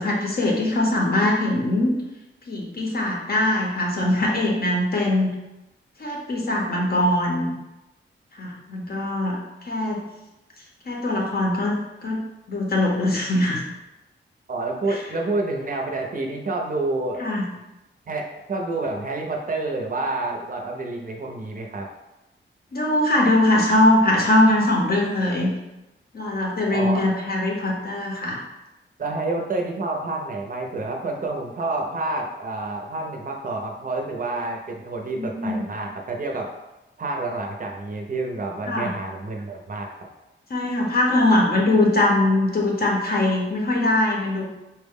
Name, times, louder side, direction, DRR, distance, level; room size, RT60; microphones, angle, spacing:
voice 1, 0.0-1.9 2.5-5.3 6.0-7.5 8.3-10.0 10.8-12.2 12.5-13.6 14.9-15.0 17.2-17.5 22.7-25.5 26.1-28.4 35.2-35.6 38.7-38.9 40.5-44.4, left 1 dB, 50° left, -2 dB, 0.6 m, -21 dB
voice 2, 14.5-17.2 18.1-21.9 26.7-27.1 29.0-36.6 37.0-40.0, right 2 dB, 45° right, 1 dB, 0.5 m, -28 dB
4.2 x 2.1 x 3.5 m, 0.99 s
wide cardioid pair, 160°, 20 cm